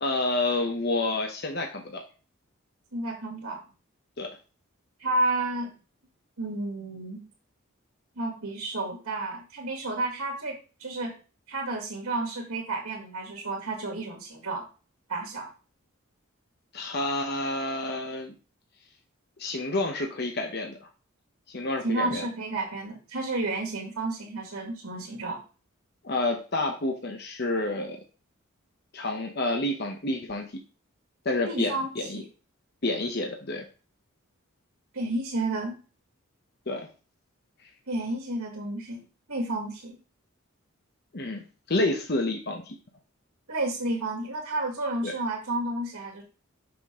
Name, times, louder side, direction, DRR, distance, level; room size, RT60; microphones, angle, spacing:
voice 1, 0.0-2.0 4.2-4.3 16.7-18.3 19.4-20.8 21.5-22.2 26.0-28.0 28.9-30.5 31.2-32.2 32.8-33.6 36.7-36.9 41.1-41.4 41.7-42.7 45.0-45.1, left 2 dB, 50° left, 2 dB, 0.9 m, -29 dB
voice 2, 2.9-3.6 5.0-5.7 6.4-7.2 8.2-11.1 11.5-14.7 15.1-15.5 21.8-25.4 31.4-32.3 34.9-35.8 37.9-39.0 39.3-40.0 43.5-46.2, right 2 dB, 90° right, -1 dB, 1.9 m, -31 dB
6.1 x 5.9 x 3.7 m, 0.35 s
head